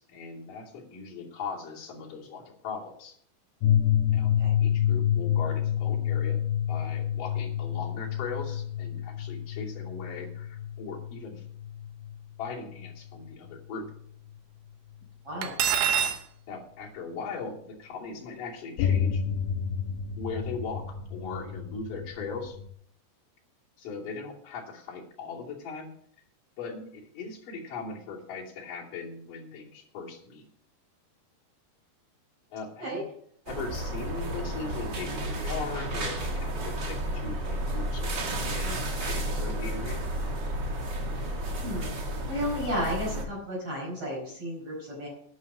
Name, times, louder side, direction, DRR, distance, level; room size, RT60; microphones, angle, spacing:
voice 1, 0.0-3.1 4.1-4.3 4.6-6.4 6.7-11.4 12.4-13.9 15.9-16.2 16.5-19.2 20.2-22.6 23.8-25.9 26.6-30.4 32.5-33.1 33.5-40.1, left 4 dB, 55° left, -3 dB, 4.2 m, -39 dB
sound 1, 3.6-12.9 13.9-14.0 18.8-22.7, left 9 dB, 80° left, 2.2 m, -29 dB
Cutlery silverware, 15.4-16.2, right 9 dB, 75° right, 1.8 m, -25 dB
sound 2, 33.5-43.2, right 1 dB, 60° right, 1.1 m, -32 dB
voice 2, 41.6-41.9 42.3-45.1, equal, 35° right, -4 dB, 5.6 m, -33 dB
11.5 x 9.8 x 6.1 m, 0.65 s
omnidirectional pair, 5.0 m